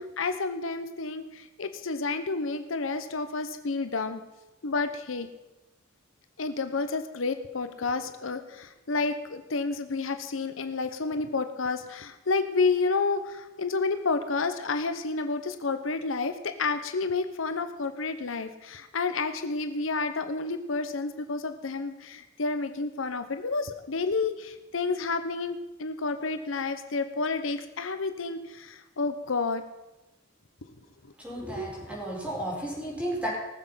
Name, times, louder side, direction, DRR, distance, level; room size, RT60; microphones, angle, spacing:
voice 1, 0.2-1.2 1.6-4.2 4.6-5.3 6.4-16.3 16.6-29.6, left 4 dB, 80° left, 9 dB, 0.9 m, -30 dB
voice 2, 31.2-33.3, right 1 dB, 5° right, -4 dB, 4.5 m, -33 dB
19.0 x 7.4 x 5.7 m, 1.0 s
head